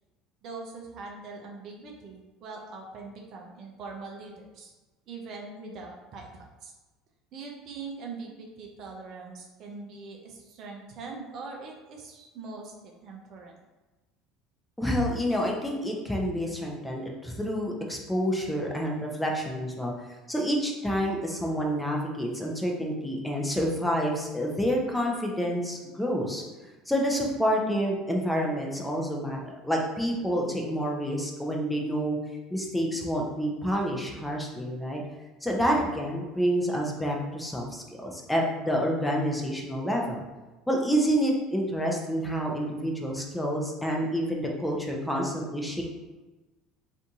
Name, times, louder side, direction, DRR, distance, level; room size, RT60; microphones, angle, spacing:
voice 1, 0.4-4.7 5.1-6.7 7.3-13.5, right 4 dB, 50° right, 0 dB, 0.5 m, -42 dB
voice 2, 14.8-19.9 20.3-26.4 26.9-32.2 32.5-35.0 35.4-40.2 40.7-45.8, equal, 5° left, -1 dB, 0.7 m, -28 dB
2.6 x 2.6 x 3.5 m, 1.2 s
figure-of-eight pair, 65°, 0 cm